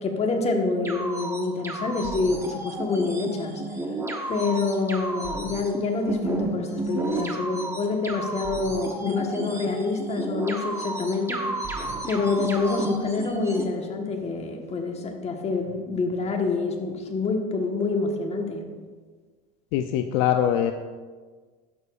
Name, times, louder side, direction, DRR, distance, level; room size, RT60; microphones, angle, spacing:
voice 1, 0.0-3.6 4.3-11.4 12.1-18.7, left 3 dB, 30° left, 3 dB, 1.4 m, -27 dB
sound 1, 0.8-13.6, right 2 dB, 15° right, 1.1 m, -32 dB
voice 2, 19.7-20.7, left 10 dB, 70° left, 7 dB, 0.5 m, -22 dB
11.5 x 6.9 x 2.5 m, 1.5 s
supercardioid pair, 90°, 20 cm